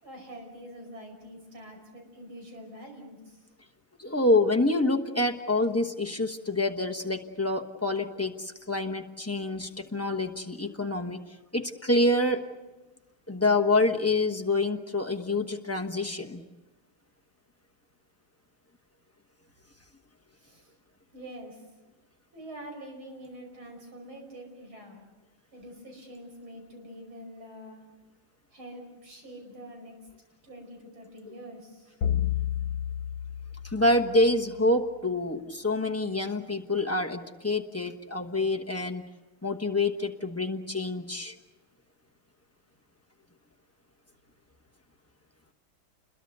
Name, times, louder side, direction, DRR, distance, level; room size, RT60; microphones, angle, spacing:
voice 1, 0.0-3.5 20.4-20.7 21.1-21.7 22.3-25.0 25.5-27.8 28.5-30.0 30.4-31.9, equal, 75° right, 2 dB, 6.3 m, -45 dB
voice 2, 4.0-11.2 11.5-12.4 13.3-16.4 33.6-39.0 39.4-41.3, left 2 dB, 10° left, 2 dB, 0.7 m, -27 dB
sound 1, 32.0-34.5, left 10 dB, 75° left, 1.8 m, -31 dB
29.5 x 21.5 x 6.8 m, 1.1 s
omnidirectional pair, 2.3 m